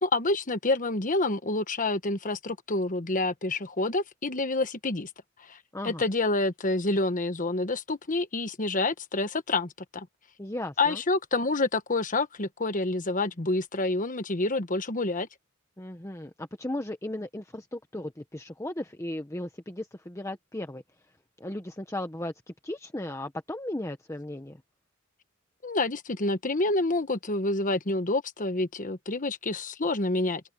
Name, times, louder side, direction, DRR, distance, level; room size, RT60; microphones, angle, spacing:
voice 1, 0.0-5.1 5.5-5.6 5.8-10.1 10.8-15.3 25.6-30.4, left 2 dB, 40° left, 1.3 m, -28 dB
voice 2, 5.7-6.0 10.4-11.0 15.8-20.8 21.4-24.6, left 1 dB, 15° left, 1.1 m, -36 dB
open air
head